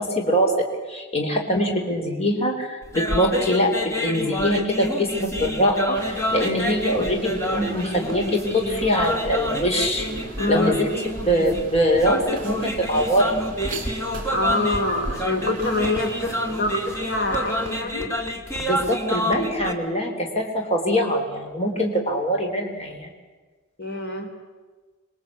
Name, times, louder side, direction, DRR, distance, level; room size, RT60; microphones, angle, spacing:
voice 1, 0.0-6.0 6.3-10.1 10.5-10.9 11.3-13.3 18.6-23.1, equal, 30° left, 2 dB, 3.5 m, -23 dB
sound 1, 2.8-19.7, equal, 15° left, 2.4 m, -28 dB
sound 2, 5.9-17.8, right 3 dB, 40° right, 4.1 m, -39 dB
voice 2, 10.4-10.8 14.3-18.1 23.8-24.3, left 2 dB, 55° left, 4 dB, 3.4 m, -25 dB
26.5 x 22.0 x 8.4 m, 1.4 s
head